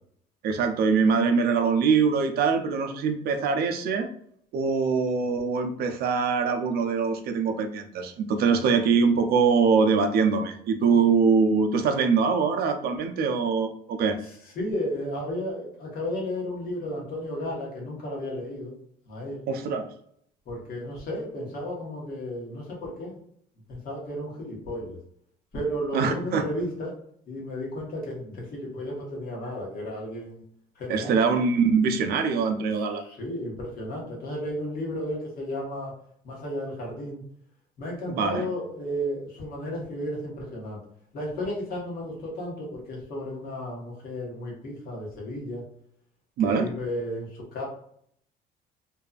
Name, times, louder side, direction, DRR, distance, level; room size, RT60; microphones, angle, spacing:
voice 1, 0.4-4.1 4.5-14.2 19.5-19.9 25.9-26.4 30.9-33.0 38.1-38.5 46.4-46.7, right 5 dB, 65° right, 7 dB, 0.4 m, -23 dB
voice 2, 14.6-18.7 19.1-19.4 20.5-23.1 23.7-25.0 25.5-26.9 27.3-30.4 30.8-31.2 32.8-35.9 36.2-37.2 37.8-40.8 41.1-45.6 46.4-47.7, left 1 dB, 60° left, -2 dB, 1.2 m, -33 dB
2.6 x 2.3 x 2.3 m, 0.66 s
cardioid pair, 110°, 17 cm